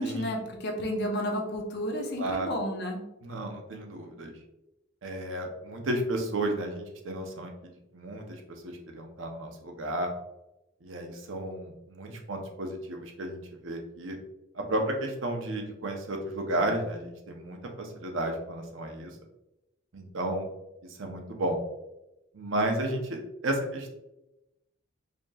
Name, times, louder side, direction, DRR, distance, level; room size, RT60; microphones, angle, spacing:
voice 1, 0.0-3.0, equal, 55° left, 1 dB, 0.7 m, -31 dB
voice 2, 2.2-2.5 3.2-4.3 5.0-10.1 10.8-14.2 14.5-19.2 19.9-20.5 20.8-21.6 22.3-23.9, right 1 dB, 65° right, 2 dB, 0.7 m, -33 dB
5.0 x 2.9 x 2.3 m, 0.92 s
head